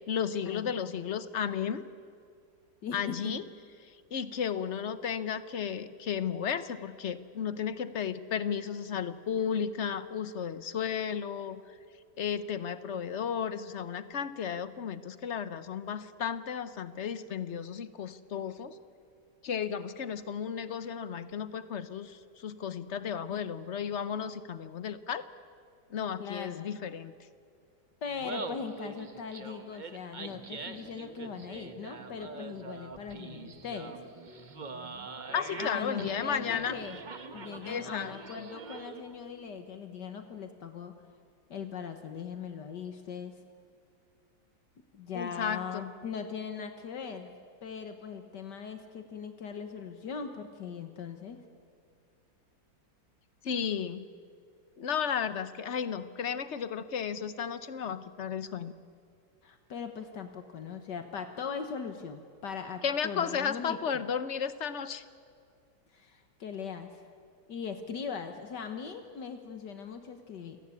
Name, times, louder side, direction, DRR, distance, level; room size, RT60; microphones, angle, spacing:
voice 1, 0.1-1.8 2.9-3.4 4.1-11.6 12.2-18.8 19.4-25.2 25.9-27.1 35.3-36.8 37.7-38.5 45.1-45.9 53.4-54.1 54.8-58.7 62.8-65.0, left 7 dB, 50° left, 14 dB, 0.9 m, -34 dB
voice 2, 2.8-3.3 23.3-23.4 26.2-26.7 28.0-34.0 35.6-37.0 37.3-40.9 41.5-43.3 44.9-47.3 47.6-51.4 59.4-63.8 65.9-67.1 67.5-70.6, left 6 dB, 70° left, 7 dB, 1.8 m, -40 dB
Laughter, 28.1-39.1, right 4 dB, 30° right, 1.0 m, -44 dB
sound 1, 30.2-39.8, right 4 dB, 80° right, 2.2 m, -52 dB
29.0 x 17.5 x 8.5 m, 2.3 s
omnidirectional pair, 2.0 m